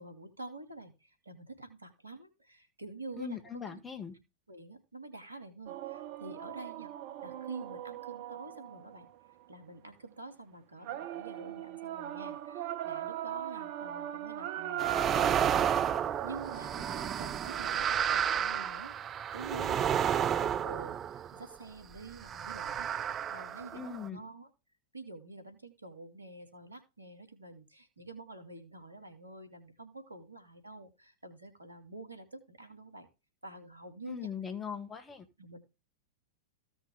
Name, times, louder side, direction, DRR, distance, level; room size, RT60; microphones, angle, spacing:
voice 1, 0.0-3.4 3.7-3.8 4.5-6.9 7.2-9.1 9.5-21.0 21.3-24.5 24.9-33.1 33.4-34.3 35.4-35.6, right 2 dB, 80° right, 6 dB, 2.6 m, -48 dB
voice 2, 3.2-4.1 23.7-24.2 34.1-35.3, left 7 dB, 15° left, 7 dB, 1.9 m, -40 dB
sound 1, 5.7-9.4 10.8-18.9, right 12 dB, 45° right, 1.0 m, -40 dB
sound 2, 14.8-21.6 22.2-24.1, right 9 dB, 25° right, 0.4 m, -31 dB
15.5 x 6.1 x 3.6 m, 0.28 s
figure-of-eight pair, 95°, 0 cm